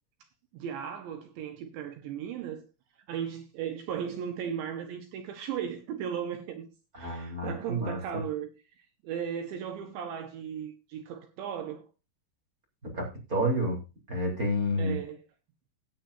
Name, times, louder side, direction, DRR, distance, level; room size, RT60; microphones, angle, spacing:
voice 1, 0.5-2.6 3.1-6.7 7.0-8.5 8.8-11.9 14.8-15.2, right 8 dB, 75° right, 3.1 m, -36 dB
voice 2, 7.0-8.2 12.8-13.8 14.1-15.0, equal, 20° right, 3.3 m, -30 dB
17.0 x 8.8 x 2.7 m
omnidirectional pair, 5.8 m